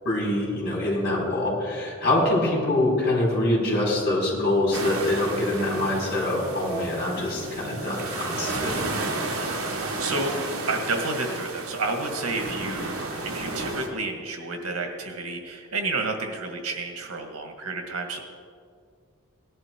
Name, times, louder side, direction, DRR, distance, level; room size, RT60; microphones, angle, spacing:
voice 1, 0.0-8.7, left 1 dB, 50° left, -3 dB, 4.5 m, -24 dB
sound 1, 4.7-13.9, right 2 dB, 70° right, 1.8 m, -32 dB
voice 2, 9.8-18.2, right 3 dB, 85° right, 4 dB, 2.0 m, -30 dB
18.0 x 11.0 x 4.6 m, 2.1 s
head